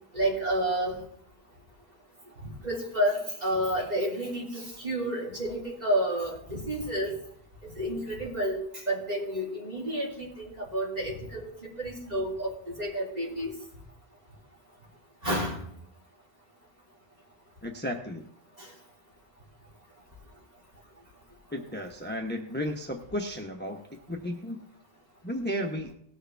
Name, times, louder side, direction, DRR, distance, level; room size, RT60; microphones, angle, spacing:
voice 1, 0.1-1.0 2.6-7.1 7.8-8.6 8.9-11.5 11.8-13.5 15.2-15.6 18.6-18.7, right 1 dB, 40° right, -4 dB, 3.3 m, -30 dB
voice 2, 17.6-18.3 21.5-24.6 25.2-25.9, equal, 10° left, 2 dB, 0.9 m, -34 dB
19.5 x 6.6 x 3.4 m, 0.69 s
omnidirectional pair, 1.0 m